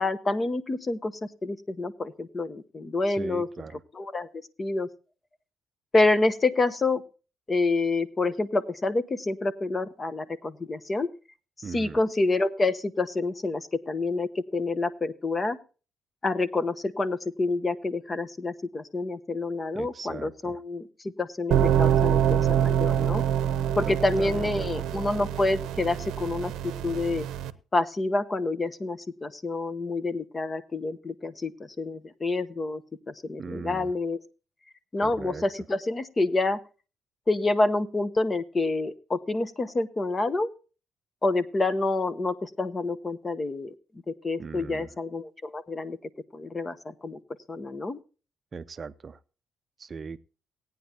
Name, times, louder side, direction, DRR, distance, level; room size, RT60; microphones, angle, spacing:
voice 1, 0.0-3.5 3.9-4.3 4.6-4.9 5.9-7.0 7.5-11.1 11.7-15.6 16.2-23.2 23.8-27.3 27.7-31.5 31.8-32.8 33.1-34.2 34.9-36.6 37.3-40.5 41.2-43.7 44.1-46.0 46.3-47.2 47.5-48.0, left 2 dB, 30° left, 13 dB, 1.0 m, -28 dB
voice 2, 3.1-3.8 11.6-12.0 19.7-20.6 23.8-24.8 33.4-33.9 35.0-35.4 44.4-44.9 48.5-49.2 49.8-50.2, right 5 dB, 40° right, 13 dB, 0.5 m, -39 dB
sound 1, 21.5-27.5, right 9 dB, 85° right, 0.7 m, -25 dB
17.5 x 9.4 x 2.8 m, 0.34 s
cardioid pair, 90°, 0 cm